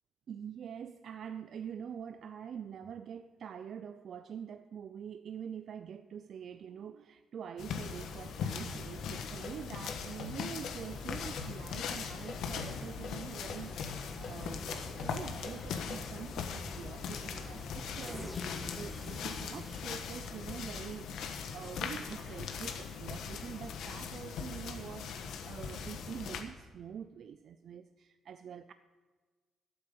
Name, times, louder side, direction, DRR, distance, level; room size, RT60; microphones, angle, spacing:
voice 1, 0.3-28.7, right 8 dB, 60° right, 11 dB, 0.5 m, -45 dB
sound 1, 7.6-26.4, left 6 dB, 80° left, 1.3 m, -40 dB
sound 2, 9.1-16.1, left 4 dB, 65° left, 2.2 m, -45 dB
sound 3, 10.9-21.2, left 1 dB, 15° left, 1.8 m, -48 dB
12.0 x 8.8 x 6.9 m, 1.4 s
cardioid pair, 90°, 0 cm